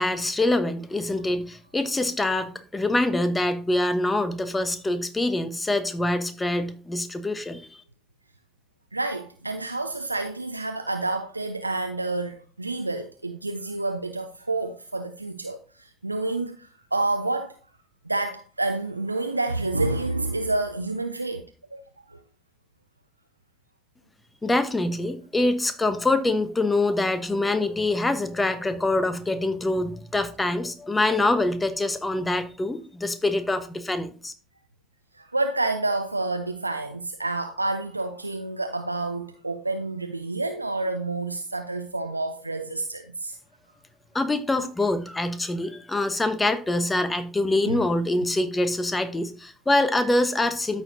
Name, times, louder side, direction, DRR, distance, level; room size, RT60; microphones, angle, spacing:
voice 1, 0.0-7.7 24.4-34.3 44.1-50.8, left 2 dB, 15° left, 1.0 m, -25 dB
voice 2, 8.9-17.6 18.1-21.4 21.7-21.8 22.1-22.2 35.1-43.4 47.7-47.9, right 2 dB, 90° right, 0.3 m, -29 dB
13.5 x 4.7 x 2.7 m
figure-of-eight pair, 55°, 0 cm